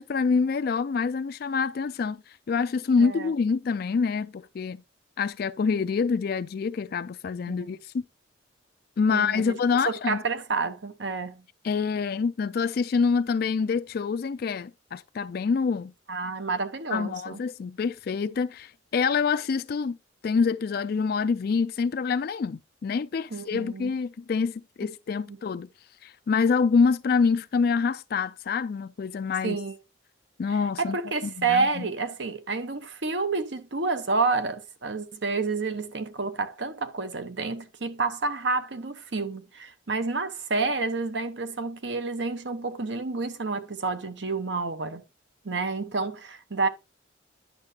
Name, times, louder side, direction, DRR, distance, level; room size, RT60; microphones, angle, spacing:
voice 1, 0.0-4.8 5.2-8.0 9.0-10.2 11.6-15.9 16.9-20.0 20.2-25.7 26.0-29.6 30.4-31.0 31.2-31.9, left 5 dB, 50° left, 0.3 m, -26 dB
voice 2, 3.0-3.3 7.5-7.7 9.1-9.6 9.8-11.4 16.1-17.4 23.3-23.9 25.3-25.4 29.4-29.7 30.5-45.0 45.4-46.7, right 4 dB, 65° right, 1.0 m, -29 dB
10.5 x 6.7 x 2.8 m
head